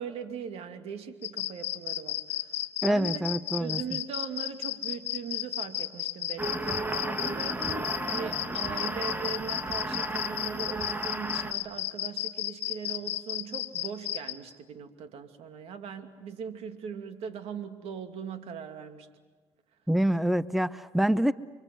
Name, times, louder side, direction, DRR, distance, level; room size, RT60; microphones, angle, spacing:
voice 1, 0.0-3.2 3.6-19.1, right 6 dB, 70° right, 7 dB, 2.6 m, -40 dB
sound 1, 1.2-14.3, left 14 dB, 75° left, 1.6 m, -33 dB
voice 2, 2.8-3.8 19.9-21.3, right 1 dB, ahead, 15 dB, 0.8 m, -26 dB
sound 2, 6.4-11.5, right 2 dB, 15° right, 2.1 m, -34 dB
30.0 x 24.5 x 7.9 m, 1.3 s
supercardioid pair, 80°, 11 cm